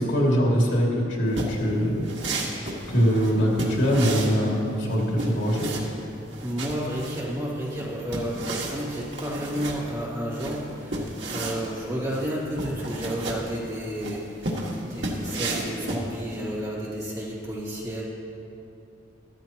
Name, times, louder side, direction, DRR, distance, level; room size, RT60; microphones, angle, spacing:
voice 1, 0.0-2.0 2.9-5.7, equal, 80° left, -3 dB, 2.4 m, -23 dB
sound 1, 1.3-16.6, right 2 dB, 70° right, 1.7 m, -33 dB
voice 2, 3.1-3.6 6.4-14.5 14.8-18.0, equal, 20° right, -6 dB, 2.5 m, -31 dB
14.0 x 13.0 x 3.0 m, 2.6 s
head